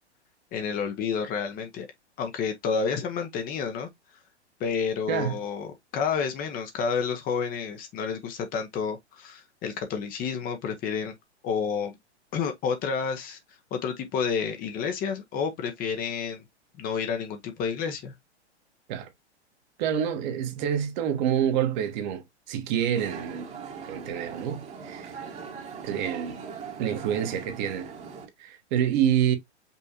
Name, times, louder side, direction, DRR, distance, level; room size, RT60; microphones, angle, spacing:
voice 1, 0.5-1.9 2.2-3.9 4.6-11.1 11.4-12.0 12.3-13.4 13.7-16.4 16.8-18.1, left 6 dB, 25° left, 1.0 m, -30 dB
voice 2, 19.8-23.5 23.8-25.1 25.8-26.4 26.8-27.9 28.4-29.4, right 9 dB, 40° right, 1.3 m, -27 dB
sound 1, 22.9-28.3, right 6 dB, 20° right, 1.3 m, -40 dB
5.5 x 3.3 x 2.8 m
figure-of-eight pair, 110°, 34 cm